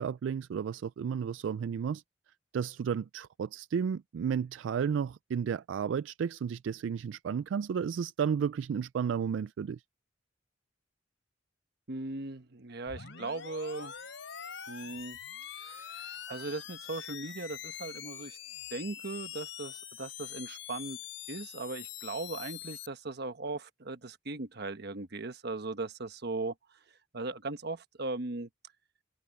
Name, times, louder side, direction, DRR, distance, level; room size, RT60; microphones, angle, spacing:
voice 1, 0.0-2.0 2.5-9.8, right 7 dB, 75° right, 0.3 m, -32 dB
voice 2, 11.9-13.9 14.7-15.2 15.6-18.4 18.7-21.0 21.3-26.8 27.1-28.5, right 3 dB, 60° right, 1.2 m, -38 dB
sound 1, 12.9-22.9, left 9 dB, 85° left, 4.0 m, -44 dB
head